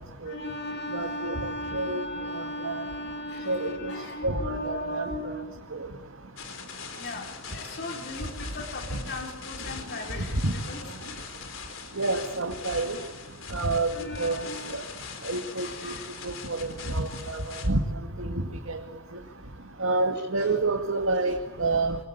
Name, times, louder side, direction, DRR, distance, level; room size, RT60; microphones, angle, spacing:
voice 1, 0.2-5.6 6.9-10.4 10.7-10.8 13.9-14.7 15.5-16.1, left 1 dB, 55° left, 1 dB, 4.5 m, -37 dB
voice 2, 0.9-2.0 2.3-2.8 3.5-3.9 4.2-5.0 5.7-5.9 10.4-10.5 12.0-13.0 13.5-14.4 14.7-14.8 15.2-15.9 16.2-17.8 18.2-18.3 18.7-18.8 19.8-22.0, right 2 dB, 85° right, 3 dB, 2.2 m, -28 dB
sound 1, 6.4-17.7, left 6 dB, 75° left, 4.0 m, -42 dB
26.0 x 24.5 x 8.5 m, 1.1 s
head